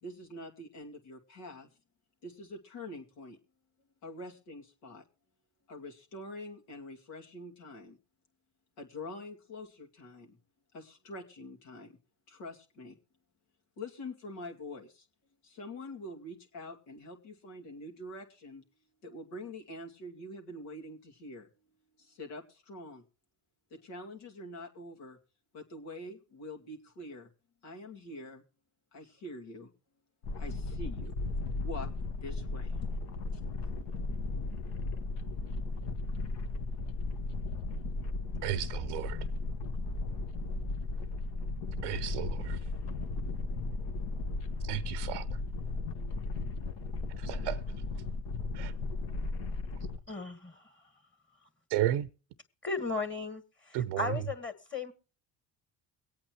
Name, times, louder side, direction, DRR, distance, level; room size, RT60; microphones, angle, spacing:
voice 1, 0.0-1.7 2.2-3.4 4.0-5.0 5.7-8.0 8.8-10.4 10.7-12.0 12.3-13.0 13.8-15.1 15.4-18.6 19.0-21.5 22.0-23.0 23.7-25.2 25.5-27.3 27.6-28.4 28.9-29.7 30.4-31.1 31.6-31.9 32.2-32.8, left 1 dB, 90° left, 2.6 m, -45 dB
sound 1, 30.2-50.0, left 3 dB, 70° left, 1.4 m, -35 dB
voice 2, 38.4-39.2 41.8-42.6 44.6-45.2 47.2-47.6 48.5-48.7 51.7-52.1 53.7-54.1, right 13 dB, 80° right, 0.7 m, -33 dB
voice 3, 50.1-50.7 52.6-54.9, left 3 dB, 25° left, 2.3 m, -36 dB
23.5 x 8.8 x 3.0 m
supercardioid pair, 75°, 43 cm